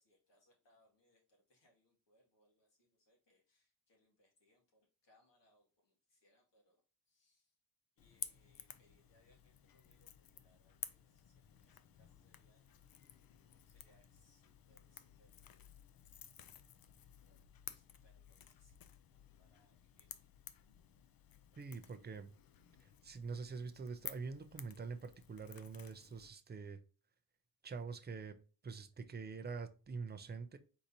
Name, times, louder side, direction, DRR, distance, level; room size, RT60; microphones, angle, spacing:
voice 1, 0.0-6.8 7.1-7.6 8.0-12.8 13.6-15.6 17.7-20.3, left 1 dB, 85° left, 2.1 m, -75 dB
Crackle / Crack, 8.0-26.3, left 9 dB, 60° left, 0.5 m, -54 dB
voice 2, 21.6-22.3 22.8-26.8 27.6-28.4 28.6-30.6, right 4 dB, 25° right, 0.4 m, -45 dB
4.7 x 4.0 x 2.7 m
wide cardioid pair, 175°, 42 cm